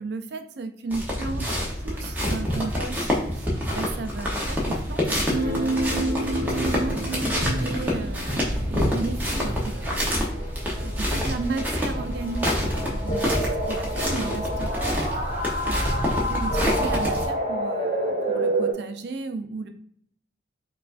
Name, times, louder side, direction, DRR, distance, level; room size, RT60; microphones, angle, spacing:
voice 1, 0.0-1.6 1.8-7.0 7.6-10.1 10.8-15.2 15.6-19.7, right 3 dB, 55° right, 7 dB, 0.4 m, -35 dB
sound 1, 0.9-17.3, equal, 10° right, 0.7 m, -27 dB
sound 2, 5.3-18.7, right 1 dB, 35° right, 1.1 m, -30 dB
sound 3, 11.1-11.7 13.1-15.1 16.5-18.6, right 1 dB, 40° left, 1.0 m, -33 dB
4.5 x 2.4 x 2.4 m, 0.68 s
head